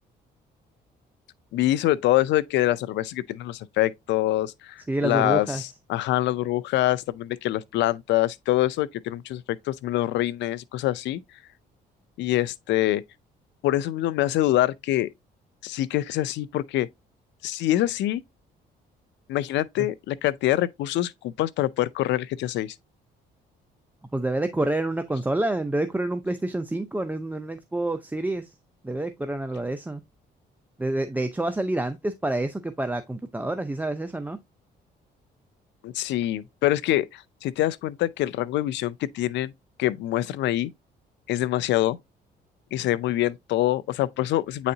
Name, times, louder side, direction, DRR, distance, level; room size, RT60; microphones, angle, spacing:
voice 1, 1.5-5.5 5.9-11.2 12.2-13.0 13.6-15.1 15.6-16.9 17.4-18.2 19.3-22.7 35.8-39.5 39.8-40.7 41.3-42.0 42.7-44.7, left 14 dB, 80° left, 0.5 m, -25 dB
voice 2, 4.9-5.6 19.8-19.9 24.1-28.6 28.8-30.0 30.8-34.4, right 2 dB, 10° right, 0.5 m, -28 dB
8.5 x 4.1 x 2.7 m
cardioid pair, 100°, 18 cm